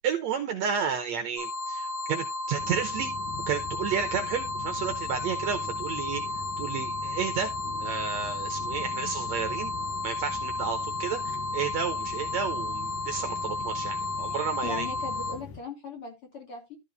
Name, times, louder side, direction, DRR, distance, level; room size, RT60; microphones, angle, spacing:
voice 1, 0.0-3.1 3.5-6.2 6.6-7.5 7.8-9.7 10.0-14.9, right 7 dB, 70° right, 6 dB, 1.9 m, -31 dB
sound 1, 1.4-15.4, left 2 dB, 90° left, 5.1 m, -33 dB
sound 2, 2.6-15.6, left 7 dB, 75° left, 2.7 m, -42 dB
voice 2, 14.6-16.8, left 4 dB, 40° left, 1 dB, 3.3 m, -39 dB
13.5 x 4.7 x 4.0 m, 0.23 s
omnidirectional pair, 3.9 m